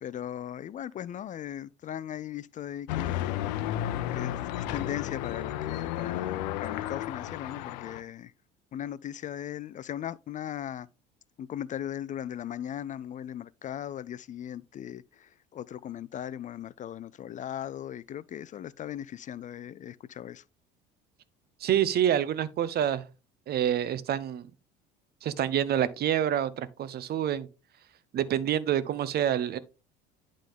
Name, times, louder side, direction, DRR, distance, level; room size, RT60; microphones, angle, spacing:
voice 1, 0.0-3.4 4.1-8.3 8.7-10.9 11.4-20.4, left 10 dB, 40° left, 0.4 m, -38 dB
sound 1, 2.9-8.0, left 12 dB, 80° left, 0.6 m, -32 dB
voice 2, 21.6-23.1 23.5-24.5 25.2-27.5 28.1-29.6, right 10 dB, 50° right, 0.8 m, -27 dB
11.0 x 3.8 x 3.6 m
hypercardioid pair, 75°, 21 cm